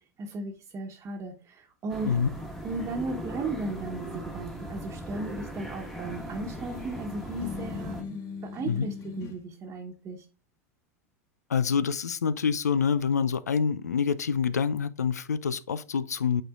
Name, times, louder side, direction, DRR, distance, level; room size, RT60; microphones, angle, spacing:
voice 1, 0.2-2.1 2.6-10.2, right 3 dB, 35° right, 1.1 m, -36 dB
sound 1, 1.9-8.0, right 1 dB, 5° left, 1.4 m, -39 dB
sound 2, 6.1-9.4, left 6 dB, 40° left, 1.6 m, -40 dB
voice 2, 11.5-16.4, left 6 dB, 90° left, 0.4 m, -26 dB
8.8 x 4.4 x 2.4 m
hypercardioid pair, 90°, 8 cm